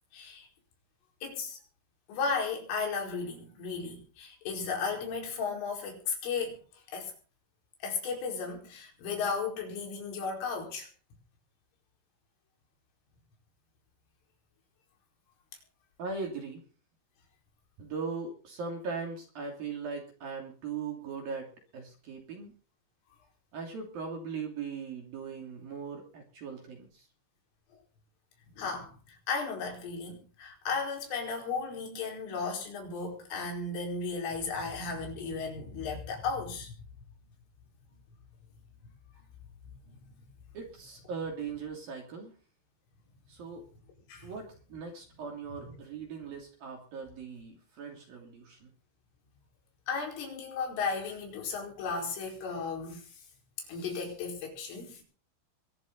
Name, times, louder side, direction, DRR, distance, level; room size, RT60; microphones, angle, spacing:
voice 1, 0.1-0.5 1.2-1.6 2.1-6.6 6.9-7.1 7.8-10.9 28.6-36.7 44.1-44.3 45.6-45.7 49.9-53.0 53.7-55.0, left 5 dB, 75° left, 1 dB, 7.2 m, -35 dB
voice 2, 16.0-16.6 17.8-22.5 23.5-27.1 40.5-42.3 43.3-43.6 44.2-48.7, right 5 dB, 50° right, 2 dB, 4.2 m, -39 dB
23.0 x 12.5 x 4.0 m, 0.38 s
omnidirectional pair, 5.8 m